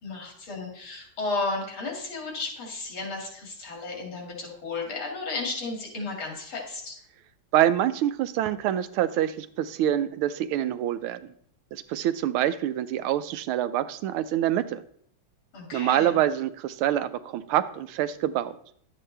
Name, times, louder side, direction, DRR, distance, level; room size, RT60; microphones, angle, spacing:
voice 1, 0.0-6.9 15.5-16.2, left 3 dB, 75° left, 0 dB, 3.2 m, -33 dB
voice 2, 7.5-11.2 11.7-14.8 15.7-18.6, right 12 dB, 90° right, 13 dB, 1.5 m, -26 dB
11.0 x 8.3 x 3.3 m, 0.64 s
omnidirectional pair, 2.3 m